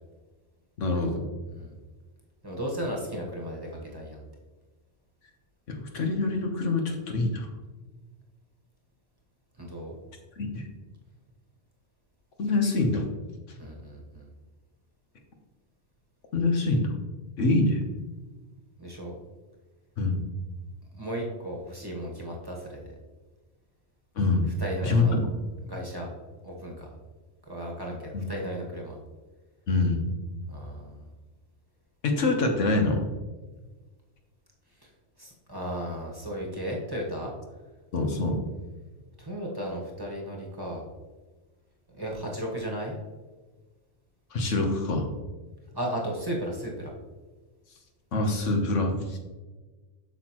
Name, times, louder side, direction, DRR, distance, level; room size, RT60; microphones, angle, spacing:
voice 1, 0.8-1.3 5.7-7.5 10.4-10.7 12.4-13.0 16.3-16.9 17.4-17.8 20.0-20.2 24.2-24.5 24.8-25.3 28.1-28.3 29.7-30.2 32.0-33.0 37.9-38.4 44.3-45.1 48.1-49.2, left 2 dB, 80° left, 3 dB, 1.4 m, -25 dB
voice 2, 2.4-4.2 9.6-9.9 13.6-14.3 18.8-19.2 20.9-22.9 24.6-25.2 25.6-26.1 26.4-27.0 27.5-29.0 30.5-31.0 34.8-34.9 35.2-37.3 39.2-40.8 42.0-43.0 45.7-46.9, equal, 20° right, -2 dB, 1.3 m, -35 dB
8.1 x 6.3 x 3.0 m, 1.3 s
omnidirectional pair, 1.3 m